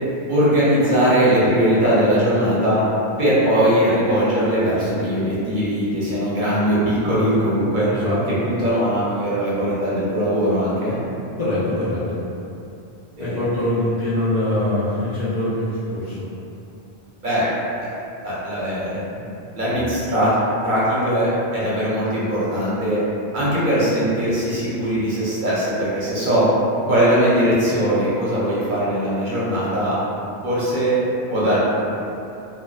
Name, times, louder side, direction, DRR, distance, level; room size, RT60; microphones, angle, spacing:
voice 1, 0.3-2.8 3.2-7.9 8.4-11.0 13.2-13.5 17.2-17.5 17.8-17.9 18.2-20.3 20.6-23.0 23.3-26.5 26.9-30.0 30.4-31.0 31.3-31.6, equal, 55° right, -9 dB, 0.7 m, -20 dB
voice 2, 7.9-8.4 11.4-12.2 13.2-16.2, left 1 dB, 55° left, -11 dB, 0.5 m, -23 dB
2.4 x 2.2 x 2.3 m, 2.7 s
omnidirectional pair, 1.1 m